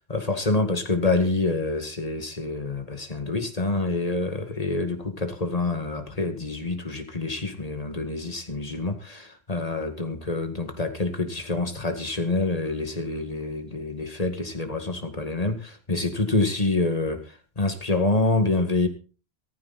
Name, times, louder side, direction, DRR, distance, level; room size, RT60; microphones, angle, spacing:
voice 1, 0.1-17.2 17.6-18.9, left 2 dB, 35° left, 2.2 m, -27 dB
15.5 x 14.5 x 4.3 m
omnidirectional pair, 1.1 m